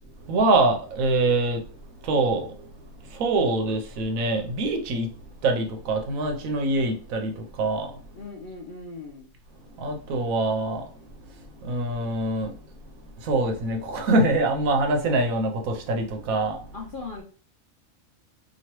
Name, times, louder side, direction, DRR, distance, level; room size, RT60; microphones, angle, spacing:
voice 1, 0.3-1.6 2.0-2.5 3.0-5.1 5.4-8.0 9.8-10.9 11.6-12.6 13.2-16.6, right 2 dB, 80° right, 1.1 m, -24 dB
voice 2, 8.1-9.3 16.7-17.2, left 3 dB, 60° left, 0.5 m, -38 dB
2.9 x 2.6 x 2.9 m
omnidirectional pair, 1.5 m